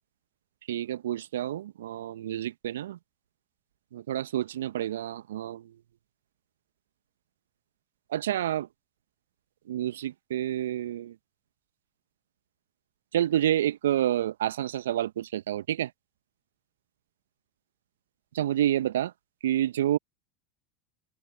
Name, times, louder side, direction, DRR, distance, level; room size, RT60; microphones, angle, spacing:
voice 1, 0.7-3.0 3.9-5.7 8.1-8.7 9.7-11.2 13.1-15.9 18.3-19.1 19.4-20.0, right 12 dB, 70° right, 0.9 m, -29 dB
open air
figure-of-eight pair, 80°, 0 cm